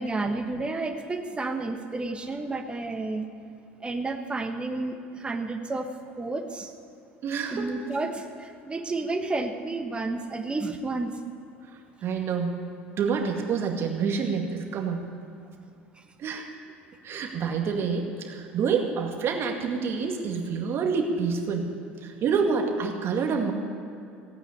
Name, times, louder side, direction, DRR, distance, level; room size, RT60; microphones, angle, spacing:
voice 1, 0.0-3.3 3.8-5.9 6.2-6.7 7.5-11.2 16.0-16.1 16.3-16.4, right 3 dB, 15° right, 5 dB, 1.4 m, -31 dB
voice 2, 7.2-7.7 11.6-12.5 13.0-15.0 16.2-16.5 17.0-21.7 22.0-23.5, right 5 dB, 40° right, 3 dB, 2.1 m, -27 dB
16.5 x 9.1 x 8.4 m, 2.7 s
figure-of-eight pair, 65°, 6 cm